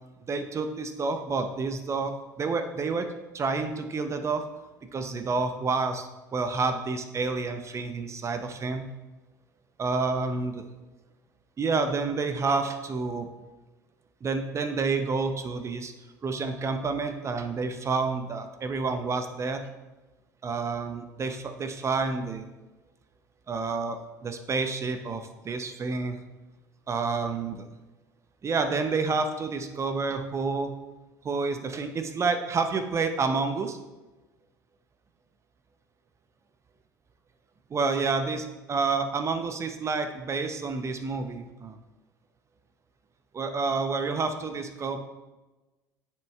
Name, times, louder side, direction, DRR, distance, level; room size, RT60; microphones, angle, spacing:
voice 1, 0.3-3.1 3.3-4.4 4.9-8.9 9.8-10.6 11.6-13.3 14.2-15.9 16.2-19.6 20.4-22.5 23.5-26.2 26.9-27.7 28.4-30.7 31.2-33.8 37.7-41.8 43.3-45.0, right 4 dB, 30° right, 7 dB, 0.7 m, -29 dB
10.0 x 6.1 x 2.4 m, 1.1 s
figure-of-eight pair, 65°, 10 cm